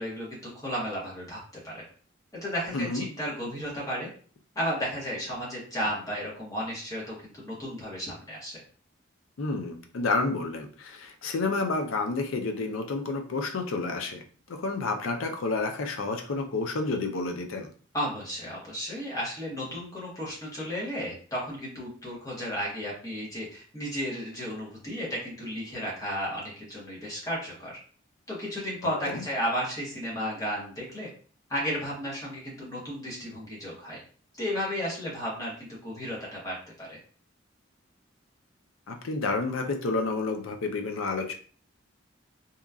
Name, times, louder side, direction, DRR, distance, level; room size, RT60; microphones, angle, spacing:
voice 1, 0.0-1.4 1.6-1.8 2.3-4.1 4.5-8.6 17.9-27.7 28.3-31.1 31.5-34.0 34.4-37.0, equal, 15° left, -6 dB, 0.9 m, -33 dB
voice 2, 2.7-3.0 9.4-17.7 28.8-29.2 38.9-41.3, left 3 dB, 85° left, 4 dB, 0.5 m, -30 dB
2.8 x 2.3 x 2.3 m, 0.43 s
head